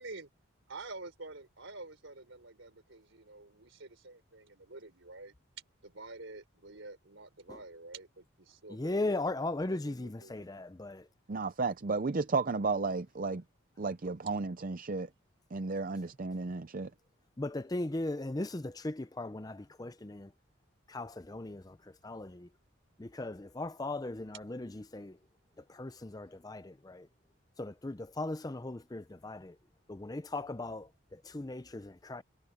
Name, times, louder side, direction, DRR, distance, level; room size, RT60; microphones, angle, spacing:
voice 1, 0.7-5.3 5.8-9.1 9.5-10.5, right 3 dB, 65° right, 4.1 m, -48 dB
voice 2, 8.7-11.1 17.4-20.3 20.9-22.5 23.0-25.2 25.6-27.1 27.6-29.6 29.9-31.8 32.1-32.2, left 2 dB, 20° left, 0.5 m, -38 dB
voice 3, 11.3-13.4 13.8-15.1 15.5-16.9, right 4 dB, 40° right, 0.6 m, -33 dB
head